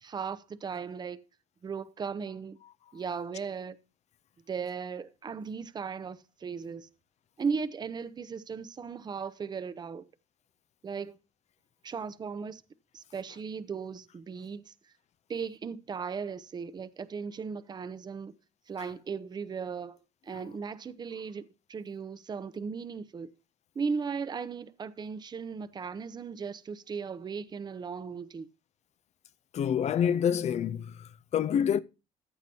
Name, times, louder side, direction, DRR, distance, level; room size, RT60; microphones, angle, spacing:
voice 1, 0.0-1.2 1.6-2.6 2.9-3.8 4.5-6.9 7.4-10.0 10.8-11.2 11.8-12.6 12.9-14.7 15.3-18.3 18.7-20.0 20.2-23.3 23.7-28.5, right 5 dB, 30° right, 0.6 m, -37 dB
voice 2, 29.5-31.8, left 8 dB, 50° left, 0.5 m, -27 dB
14.5 x 8.0 x 2.8 m
cardioid pair, 120°, 14 cm